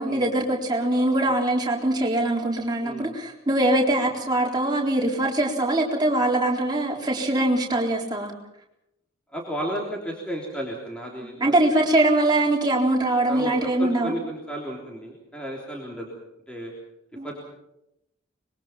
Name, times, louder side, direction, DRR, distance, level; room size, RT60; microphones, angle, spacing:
voice 1, 0.0-8.3 11.2-14.1 17.2-17.3, right 1 dB, 20° right, -1 dB, 4.1 m, -22 dB
voice 2, 2.8-3.1 9.3-11.5 13.3-16.1 16.5-16.7 17.2-17.4, equal, 5° left, -2 dB, 3.3 m, -33 dB
25.5 x 22.0 x 5.9 m, 0.85 s
head